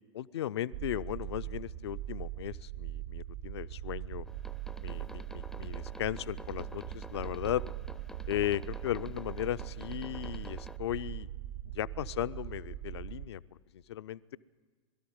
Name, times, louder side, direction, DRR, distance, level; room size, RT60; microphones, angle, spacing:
voice 1, 0.1-4.3 4.8-7.6 8.3-11.3 11.7-14.4, left 12 dB, 60° left, 14 dB, 0.5 m, -36 dB
sound 1, 0.7-13.3, right 13 dB, 60° right, 0.9 m, -41 dB
sound 2, 4.3-10.8, left 1 dB, ahead, 0.5 m, -50 dB
22.5 x 13.0 x 9.7 m, 1.4 s
figure-of-eight pair, 90°, 16 cm